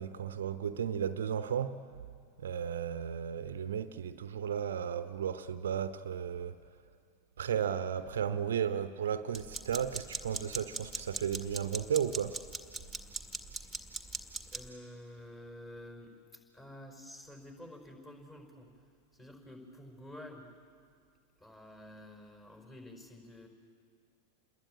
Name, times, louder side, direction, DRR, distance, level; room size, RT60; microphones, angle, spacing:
voice 1, 0.0-2.0 2.4-6.6 7.4-12.4, right 8 dB, 65° right, 0.8 m, -34 dB
sound 1, 9.3-14.7, right 3 dB, ahead, 1.9 m, -40 dB
voice 2, 13.6-18.7 19.1-20.5 21.4-23.5, left 1 dB, 15° left, 5.0 m, -50 dB
28.5 x 21.5 x 8.7 m
figure-of-eight pair, 90°, 0 cm